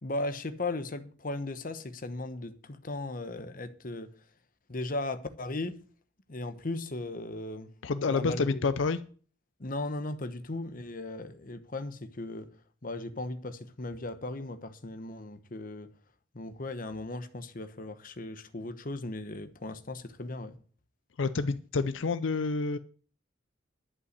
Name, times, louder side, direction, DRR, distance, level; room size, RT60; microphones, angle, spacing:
voice 1, 0.0-4.1 4.7-5.7 6.3-7.7 8.1-8.6 9.6-12.5 12.8-15.9 16.3-20.6, left 2 dB, 45° left, 1.0 m, -37 dB
voice 2, 7.8-9.0 21.2-22.8, left 4 dB, 75° left, 0.5 m, -28 dB
11.0 x 5.6 x 8.0 m
head